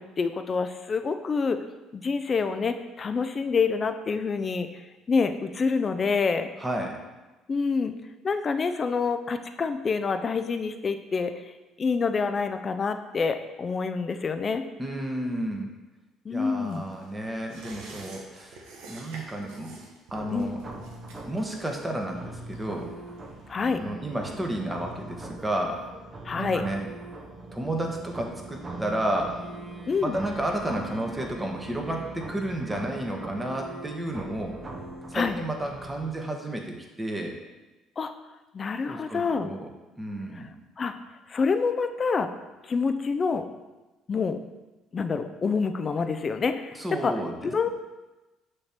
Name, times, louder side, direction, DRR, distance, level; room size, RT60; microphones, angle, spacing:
voice 1, 0.0-1.6 1.9-4.7 5.1-6.5 7.5-7.9 8.2-11.5 11.8-14.6 16.2-16.8 20.3-20.5 23.5-23.8 26.2-26.6 29.9-30.2 35.1-35.4 38.0-38.1 38.5-39.5 40.8-40.9 41.3-42.3 42.6-43.5 44.1-44.4 44.9-47.1 47.4-47.7, left 5 dB, 40° left, 9 dB, 0.5 m, -27 dB
voice 2, 6.6-7.0 14.8-15.7 16.3-19.7 20.1-20.6 21.3-22.9 23.7-25.9 26.3-26.9 27.5-29.4 30.0-34.6 35.1-37.4 38.8-39.7 40.0-40.5 46.7-47.3, right 1 dB, 15° right, 2 dB, 1.3 m, -32 dB
sound 1, 16.6-23.7 24.0-24.1, right 3 dB, 75° right, 1.2 m, -48 dB
sound 2, 20.1-36.1, right 2 dB, 35° right, 1.1 m, -41 dB
6.6 x 3.2 x 5.9 m, 1.1 s
supercardioid pair, 75°, 0 cm